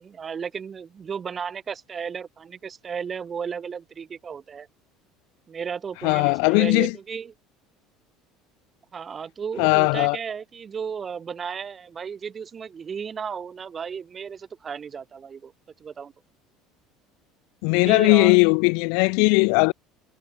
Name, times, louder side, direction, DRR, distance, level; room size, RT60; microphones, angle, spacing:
voice 1, 0.0-4.7 5.5-7.3 8.9-15.5 15.8-16.1 17.7-18.4, right 6 dB, 30° right, 7.1 m, -34 dB
voice 2, 6.0-6.9 9.6-10.2 17.6-19.7, left 40 dB or more, 80° left, 1.1 m, -18 dB
cardioid pair, 130°, 0 cm